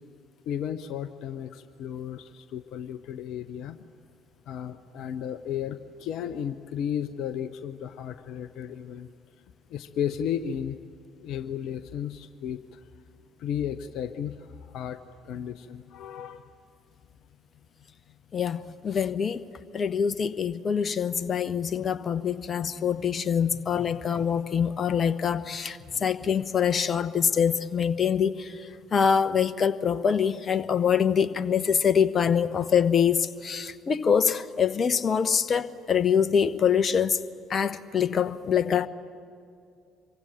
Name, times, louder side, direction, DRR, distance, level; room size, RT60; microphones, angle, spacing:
voice 1, 0.5-3.8 4.5-9.1 9.7-10.8 11.2-12.8 13.4-16.5 23.5-23.6 23.9-24.0 25.9-26.0, left 9 dB, 55° left, 0.7 m, -34 dB
voice 2, 18.3-19.4 19.7-37.2 37.5-38.9, left 7 dB, 35° left, 0.9 m, -25 dB
26.0 x 23.5 x 9.0 m
figure-of-eight pair, 50°, 0 cm